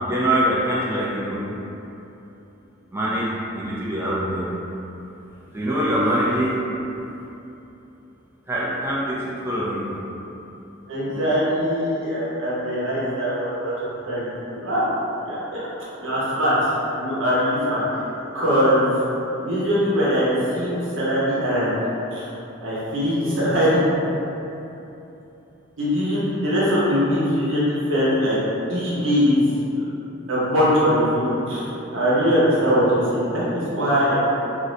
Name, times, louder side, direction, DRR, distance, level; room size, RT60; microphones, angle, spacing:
voice 1, 0.0-1.4 2.9-4.5 5.5-6.5 8.5-9.9, right 1 dB, 10° right, -7 dB, 0.4 m, -23 dB
voice 2, 10.9-14.8 15.2-15.6 16.0-16.5 16.9-18.0 18.3-18.9 19.4-21.7 22.1-22.2 22.6-23.8 25.8-28.4 28.7-29.4 30.3-34.2, equal, 70° right, -9 dB, 0.9 m, -21 dB
2.6 x 2.6 x 3.2 m, 2.9 s
head